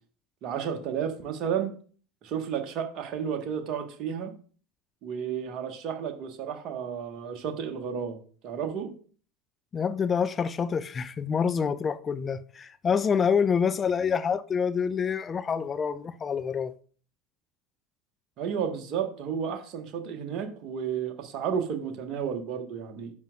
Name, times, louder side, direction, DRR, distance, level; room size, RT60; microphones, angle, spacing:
voice 1, 0.4-1.7 2.2-4.3 5.0-8.2 8.4-8.9 18.4-23.1, right 7 dB, 45° right, 1.4 m, -32 dB
voice 2, 9.7-16.7, left 6 dB, 30° left, 0.5 m, -27 dB
10.5 x 7.3 x 2.5 m
figure-of-eight pair, 70°, 0 cm